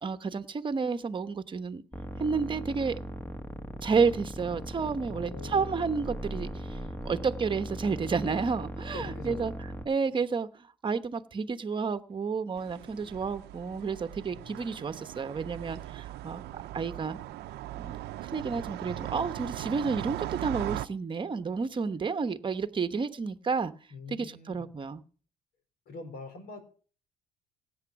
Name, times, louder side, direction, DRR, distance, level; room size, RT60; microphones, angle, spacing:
voice 1, 0.0-1.8 2.2-3.0 3.8-6.8 7.0-9.5 9.9-17.2 17.8-23.7 24.1-25.0, right 5 dB, 30° right, 10 dB, 1.1 m, -31 dB
sound 1, 1.9-9.8, equal, 10° left, 1.7 m, -39 dB
voice 2, 5.1-5.8 8.9-9.5 14.3-14.9 23.9-24.7 25.9-26.6, left 4 dB, 70° left, 7 dB, 4.4 m, -44 dB
sound 2, 12.6-20.9, right 15 dB, 80° right, 0.7 m, -39 dB
16.5 x 8.8 x 6.0 m, 0.42 s
cardioid pair, 110°, 17 cm